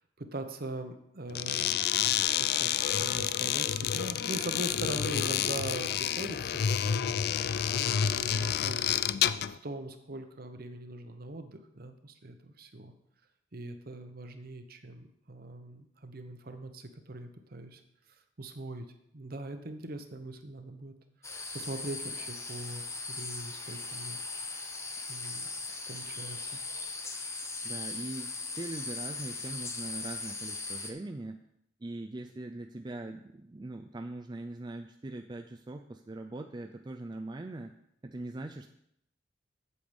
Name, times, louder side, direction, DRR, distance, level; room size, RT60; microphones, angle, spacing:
voice 1, 0.2-1.8 2.4-8.9 9.5-12.9 13.5-17.8 18.4-18.9 19.1-20.9 21.3-24.2 25.1-25.5 25.9-26.6, right 2 dB, 50° right, 7 dB, 1.0 m, -41 dB
sound 1, 1.3-9.6, left 9 dB, 55° left, 0.3 m, -29 dB
sound 2, 21.2-30.9, left 3 dB, 15° left, 0.9 m, -39 dB
voice 2, 27.6-31.4 31.8-37.8 38.0-38.7, right 2 dB, 25° right, 4 dB, 0.4 m, -41 dB
8.5 x 7.8 x 5.2 m, 0.76 s
head